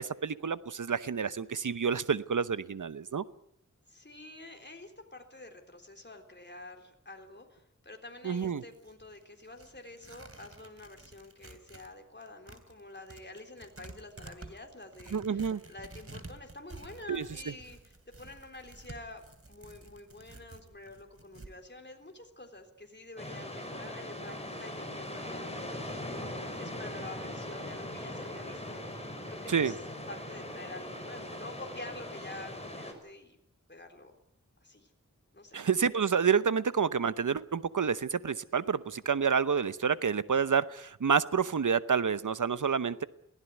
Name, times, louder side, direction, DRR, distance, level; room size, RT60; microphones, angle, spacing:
voice 1, 0.0-3.2 8.2-8.6 15.1-15.6 17.1-17.2 29.5-29.7 35.5-43.0, right 6 dB, 90° right, 15 dB, 0.9 m, -29 dB
voice 2, 3.9-29.8 30.1-33.4 33.7-34.2 34.6-34.9 35.3-35.6, left 2 dB, 35° left, 4 dB, 3.6 m, -48 dB
Tearing, 8.2-11.9 12.2-21.5, right 2 dB, 50° right, 2.9 m, -51 dB
sound 1, 23.2-32.9, left 1 dB, 20° left, 5.5 m, -40 dB
23.0 x 16.5 x 9.2 m, 0.75 s
wide cardioid pair, 55°, 30 cm